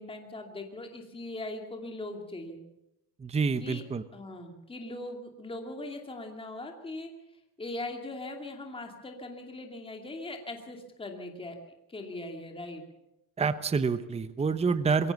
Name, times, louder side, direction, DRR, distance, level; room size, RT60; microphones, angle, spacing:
voice 1, 0.0-2.6 3.6-3.8 4.1-7.1 7.6-11.6 11.9-12.8, left 2 dB, 15° left, 3 dB, 2.5 m, -40 dB
voice 2, 3.2-4.0 13.4-15.1, right 5 dB, 15° right, 12 dB, 0.8 m, -27 dB
22.5 x 17.0 x 7.1 m, 0.87 s
cardioid pair, 150°, 37 cm